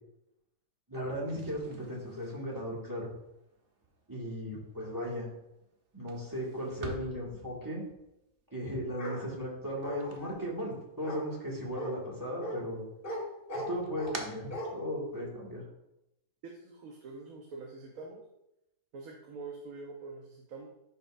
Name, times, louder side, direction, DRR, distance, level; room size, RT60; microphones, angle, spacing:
voice 1, 0.9-3.1 4.1-5.3 5.9-7.8 8.5-12.8 13.7-15.6, equal, 15° right, -3 dB, 1.7 m, -36 dB
sound 1, 1.3-11.2 11.5-12.3 12.7-15.3, right 2 dB, 45° right, 1.0 m, -49 dB
Bark, 9.0-9.2 9.8-10.4 11.0-11.2 11.8-11.9 12.4-12.6 13.0-13.2 13.5-14.2 14.5-14.7, equal, 35° left, 1.9 m, -38 dB
voice 2, 16.4-18.2 18.9-20.7, right 3 dB, 75° right, 1 dB, 1.3 m, -45 dB
10.5 x 5.6 x 2.5 m, 0.87 s
omnidirectional pair, 1.5 m